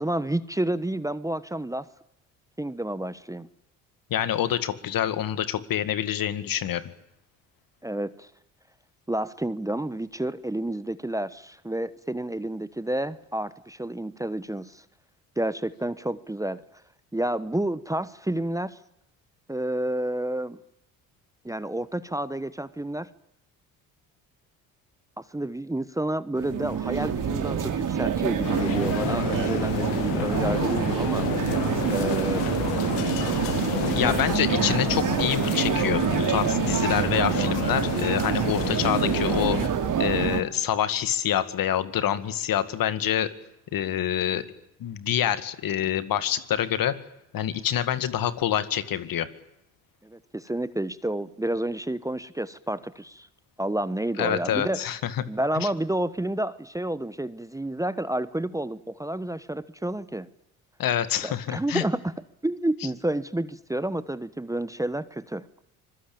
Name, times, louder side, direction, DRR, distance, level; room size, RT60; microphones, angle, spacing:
voice 1, 0.0-1.9 2.6-3.5 7.8-8.3 9.1-14.8 15.4-16.6 17.1-18.8 19.5-20.6 21.4-23.1 25.2-32.5 34.0-34.2 50.0-53.3 53.6-54.8 55.3-60.3 61.2-62.1 62.4-65.5, right 1 dB, 10° right, 16 dB, 1.1 m, -30 dB
voice 2, 4.1-6.8 33.9-43.3 43.7-44.4 44.8-46.9 47.3-49.3 54.2-55.2 55.6-55.7 60.8-61.8, left 10 dB, 55° left, 13 dB, 2.0 m, -26 dB
sound 1, 26.4-40.4, right 8 dB, 50° right, 3.0 m, -26 dB
sound 2, 28.4-39.7, left 16 dB, 75° left, 1.4 m, -31 dB
25.0 x 22.0 x 8.8 m, 0.80 s
hypercardioid pair, 60°, 41 cm